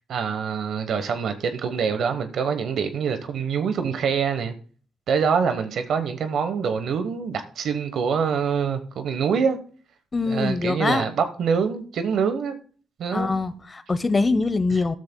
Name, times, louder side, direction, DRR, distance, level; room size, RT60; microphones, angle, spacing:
voice 1, 0.1-4.5 5.1-9.6 10.2-12.6 13.0-13.3 14.7-14.8, right 6 dB, 65° right, 1.1 m, -25 dB
voice 2, 10.1-11.0 13.1-15.0, left 3 dB, 25° left, 0.8 m, -23 dB
13.0 x 12.5 x 2.2 m
cardioid pair, 90°, 0 cm